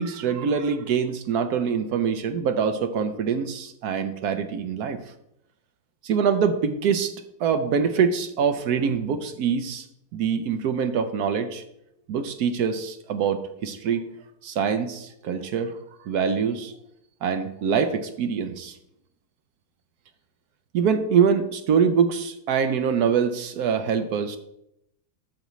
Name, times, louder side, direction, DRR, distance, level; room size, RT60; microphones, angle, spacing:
voice 1, 0.0-5.0 6.0-7.1 7.4-9.9 10.1-11.6 12.1-14.0 14.4-15.7 16.1-16.8 17.2-18.8 20.7-24.4, right 6 dB, 70° right, 8 dB, 0.9 m, -24 dB
12.0 x 6.9 x 3.1 m, 0.80 s
omnidirectional pair, 2.2 m